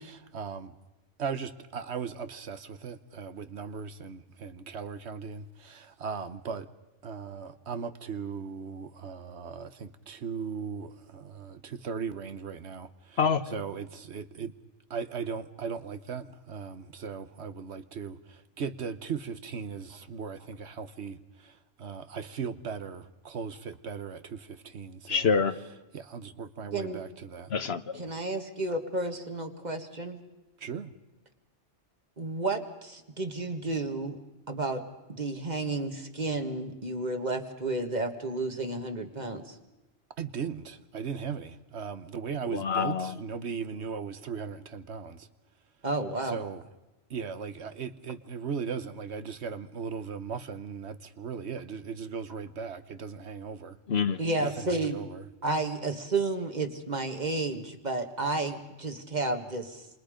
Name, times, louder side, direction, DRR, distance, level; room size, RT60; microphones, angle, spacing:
voice 1, 0.2-0.7 1.2-6.7 7.0-13.2 13.5-14.5 14.9-25.3 25.9-27.5 30.6-30.9 40.2-45.3 46.2-46.7 47.1-53.8 54.4-55.3, right 6 dB, 75° right, 1.3 m, -38 dB
voice 2, 25.1-25.6 27.5-28.0 42.5-43.1 53.9-54.2, left 5 dB, 65° left, 1.3 m, -26 dB
voice 3, 26.7-27.0 28.0-30.2 32.2-34.2 34.5-34.8 35.1-39.6 45.8-46.4 54.2-55.0 55.4-59.9, right 2 dB, 40° right, 1.8 m, -31 dB
27.5 x 27.5 x 5.1 m
omnidirectional pair, 1.2 m